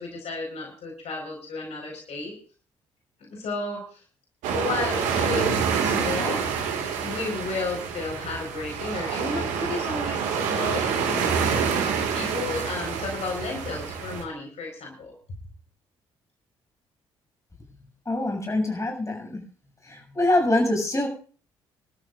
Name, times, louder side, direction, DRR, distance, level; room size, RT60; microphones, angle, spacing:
voice 1, 0.0-2.4 3.3-4.0 4.5-6.4 7.0-15.1, left 3 dB, 55° left, 1 dB, 4.8 m, -33 dB
sound 1, 4.4-14.2, right 6 dB, 65° right, 2.1 m, -27 dB
voice 2, 18.1-19.4 19.9-21.1, left 1 dB, 20° left, 1 dB, 6.8 m, -24 dB
26.0 x 13.0 x 2.5 m, 0.40 s
figure-of-eight pair, 45°, 14 cm